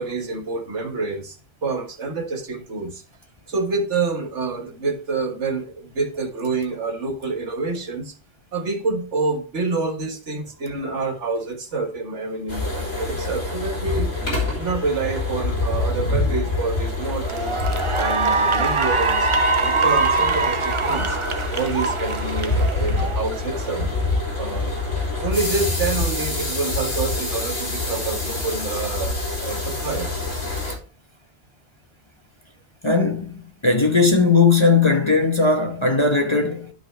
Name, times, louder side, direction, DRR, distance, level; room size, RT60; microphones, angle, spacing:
voice 1, 0.0-3.0 3.5-8.2 8.5-14.1 14.5-17.6 17.9-19.3 19.6-21.2 21.5-23.9 24.4-24.7 25.2-30.1, right 3 dB, 65° right, 1.9 m, -27 dB
sound 1, 12.5-30.7, left 2 dB, 80° left, 3.7 m, -26 dB
Cheering / Applause, 16.5-16.7 17.2-23.7, right 4 dB, 35° right, 0.6 m, -23 dB
voice 2, 32.8-36.7, left 4 dB, 25° left, 1.0 m, -18 dB
11.5 x 5.6 x 3.3 m
omnidirectional pair, 1.3 m